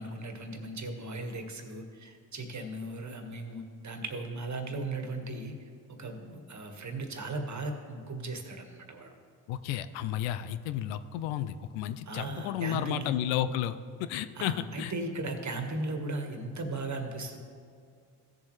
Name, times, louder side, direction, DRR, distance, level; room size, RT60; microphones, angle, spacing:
voice 1, 0.0-5.5 6.0-9.1 12.1-13.1 14.3-17.4, right 2 dB, 40° right, 5 dB, 1.6 m, -37 dB
voice 2, 9.5-14.9, left 11 dB, 85° left, 13 dB, 0.5 m, -32 dB
15.0 x 7.1 x 3.2 m, 2.2 s
hypercardioid pair, 50°, 45 cm